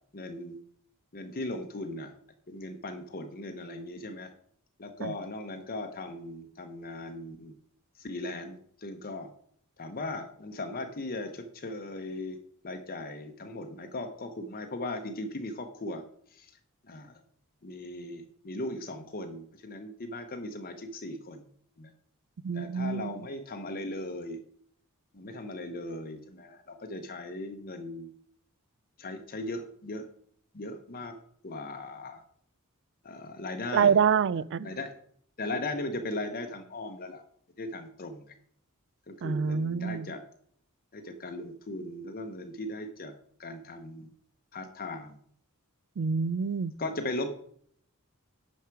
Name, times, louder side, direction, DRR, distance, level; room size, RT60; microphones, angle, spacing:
voice 1, 0.1-0.6 1.1-2.1 2.5-4.3 4.8-7.5 8.0-9.3 9.8-12.4 12.6-16.0 16.3-16.6 16.8-17.2 17.6-21.5 21.8-21.9 22.5-24.4 25.1-28.1 29.0-30.1 30.5-31.2 31.4-32.2 33.0-34.0 34.6-34.9 35.4-37.2 37.6-38.3 39.1-40.2 40.9-43.1 43.4-44.1 44.5-45.2 46.8-47.3, left 2 dB, 40° left, 0.9 m, -38 dB
voice 2, 22.4-23.1 33.7-34.7 39.2-40.1 46.0-46.7, right 6 dB, 55° right, 0.4 m, -26 dB
10.5 x 6.5 x 4.7 m
head